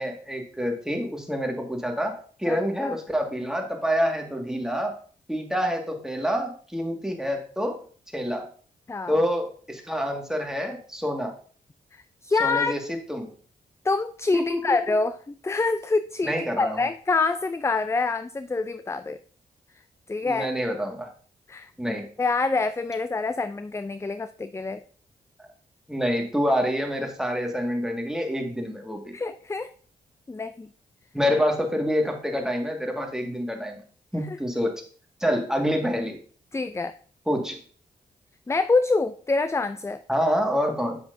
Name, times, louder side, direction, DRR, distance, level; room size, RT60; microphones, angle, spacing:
voice 1, 0.0-5.0 5.3-7.8 8.1-8.5 9.1-11.3 12.4-13.3 14.3-15.0 16.2-16.8 20.2-21.1 21.8-22.0 25.4-25.5 25.9-29.1 31.1-33.8 34.1-34.8 35.2-36.2 37.3-37.6 40.1-41.0, equal, 5° right, 2 dB, 1.9 m, -27 dB
voice 2, 2.5-3.0 8.9-9.2 11.9-12.7 13.8-19.2 20.1-20.5 21.5-24.8 29.1-29.7 30.3-30.7 34.3-34.4 36.5-36.9 38.5-40.0, left 3 dB, 15° left, 12 dB, 0.4 m, -26 dB
7.9 x 5.6 x 2.7 m, 0.44 s
supercardioid pair, 45°, 18 cm